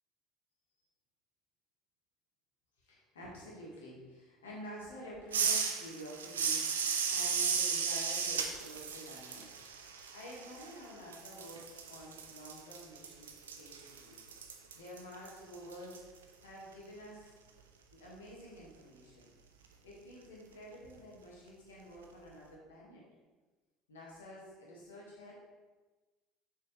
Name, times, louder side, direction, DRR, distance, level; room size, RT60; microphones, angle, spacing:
voice 1, 2.8-9.5 10.1-14.2 14.8-16.0 16.4-17.3 17.9-19.3 19.8-23.0 23.9-25.3, equal, 75° left, -5 dB, 1.9 m, -49 dB
sound 1, 5.3-10.8 11.1-16.0, right 6 dB, 80° right, 0.5 m, -35 dB
7.1 x 4.9 x 3.3 m, 1.3 s
figure-of-eight pair, 65°, 0 cm